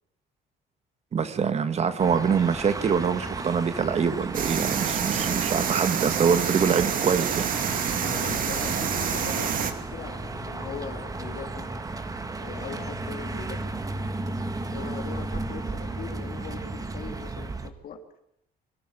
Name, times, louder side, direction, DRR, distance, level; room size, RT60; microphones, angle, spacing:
voice 1, 1.1-7.5, right 6 dB, 40° right, 10 dB, 1.7 m, -24 dB
sound 1, 2.0-17.7, right 2 dB, 20° right, 1.7 m, -34 dB
sound 2, 4.3-9.7, right 7 dB, 55° right, 2.5 m, -27 dB
voice 2, 7.9-11.7 12.4-13.8 14.6-18.0, left 7 dB, 60° left, 4 dB, 3.4 m, -40 dB
24.5 x 12.5 x 10.0 m, 0.77 s
cardioid pair, 110°, 17 cm